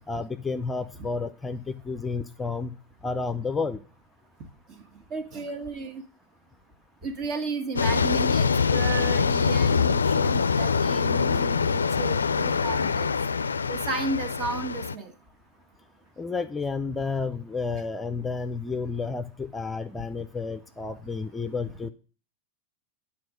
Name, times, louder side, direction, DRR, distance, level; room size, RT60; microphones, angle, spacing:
voice 1, 0.1-3.8 16.2-21.9, left 4 dB, 15° left, 10 dB, 0.6 m, -31 dB
voice 2, 5.1-6.0 7.0-13.1 13.7-15.1, right 4 dB, 40° right, 6 dB, 1.8 m, -33 dB
sound 1, 7.8-15.0, left 5 dB, 85° left, 0.4 m, -24 dB
9.4 x 4.4 x 6.3 m, 0.36 s
figure-of-eight pair, 90°, 0 cm